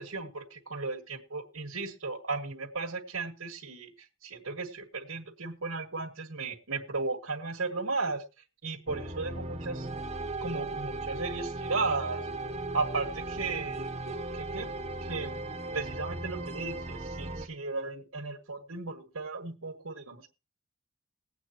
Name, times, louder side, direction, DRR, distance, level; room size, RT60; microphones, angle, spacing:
voice 1, 0.0-8.2 8.6-9.9 10.4-12.3 12.7-14.7 15.0-15.3 15.7-20.3, right 3 dB, 85° right, 1.7 m, -35 dB
sound 1, 8.9-17.5, right 2 dB, 30° right, 0.9 m, -37 dB
21.0 x 8.5 x 3.0 m
head